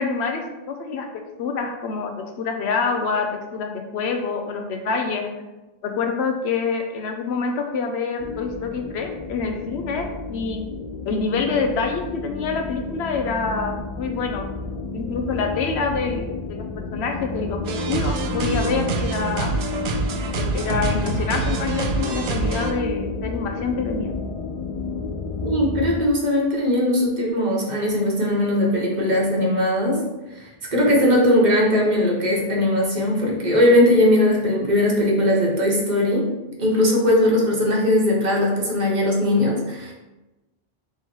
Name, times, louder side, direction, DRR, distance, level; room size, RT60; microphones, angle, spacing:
voice 1, 0.0-5.3 5.8-10.6 11.1-14.5 14.9-16.7 16.9-19.5 20.4-24.1, left 4 dB, 85° left, 4 dB, 0.9 m, -26 dB
sound 1, 8.2-26.0, left 3 dB, 55° left, 0.4 m, -31 dB
sound 2, 17.7-22.7, right 4 dB, 80° right, 0.8 m, -26 dB
voice 2, 25.4-30.0 30.3-36.3 36.6-39.9, left 1 dB, 45° right, -3 dB, 1.0 m, -19 dB
3.6 x 3.0 x 4.3 m, 1.1 s
omnidirectional pair, 1.1 m